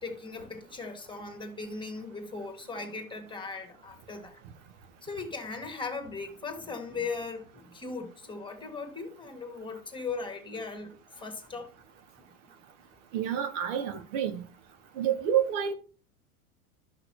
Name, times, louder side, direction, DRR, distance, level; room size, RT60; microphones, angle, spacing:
voice 1, 0.0-4.4 5.0-11.7, left 4 dB, 10° left, 1.8 m, -38 dB
voice 2, 13.1-14.4 14.9-15.7, right 9 dB, 55° right, 1.2 m, -28 dB
12.5 x 5.9 x 3.0 m
hypercardioid pair, 90°, 43 cm